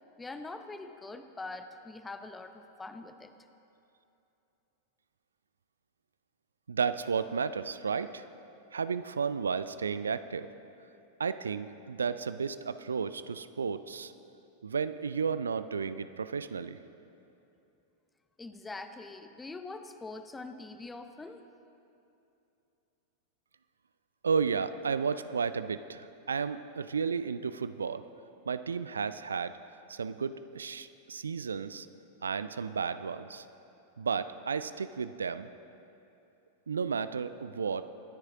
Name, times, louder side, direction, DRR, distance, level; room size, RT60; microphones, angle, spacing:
voice 1, 0.2-3.3 18.4-21.4, left 3 dB, 10° left, 9 dB, 0.7 m, -43 dB
voice 2, 6.7-8.2 8.7-10.5 11.2-14.1 14.6-16.8 24.2-28.0 28.5-29.6 29.9-31.9 32.2-33.4 34.0-35.5 36.7-37.9, right 6 dB, 70° right, 13 dB, 0.4 m, -33 dB
23.0 x 9.6 x 3.7 m, 2.8 s
figure-of-eight pair, 90°, 0 cm